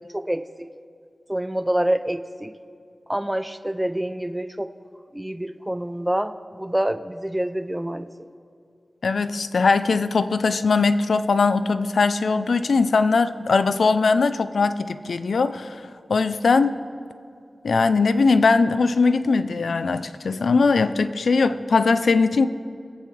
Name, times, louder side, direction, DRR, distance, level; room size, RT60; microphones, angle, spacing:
voice 1, 0.1-0.7 1.3-2.5 3.1-4.7 5.1-8.1, right 1 dB, 10° right, 12 dB, 0.5 m, -26 dB
voice 2, 9.0-15.8 16.1-16.7 17.6-22.5, left 4 dB, 90° left, 12 dB, 0.4 m, -20 dB
23.0 x 8.5 x 3.3 m, 2.4 s
wide cardioid pair, 60°, 0 cm